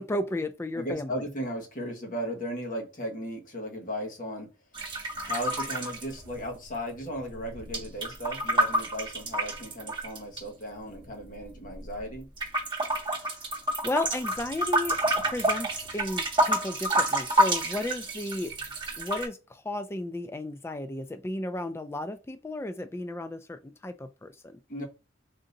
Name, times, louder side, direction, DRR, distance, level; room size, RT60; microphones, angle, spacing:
voice 1, 0.0-1.2 12.8-13.5 13.8-18.5 19.0-24.6, left 1 dB, 15° left, 0.3 m, -34 dB
voice 2, 0.7-4.5 5.2-12.3 24.7-24.8, equal, 45° left, 1.2 m, -36 dB
sound 1, 4.7-6.8 7.0-10.4 11.0-12.0 12.4-19.3, right 1 dB, 25° right, 1.4 m, -29 dB
3.7 x 2.7 x 3.8 m
head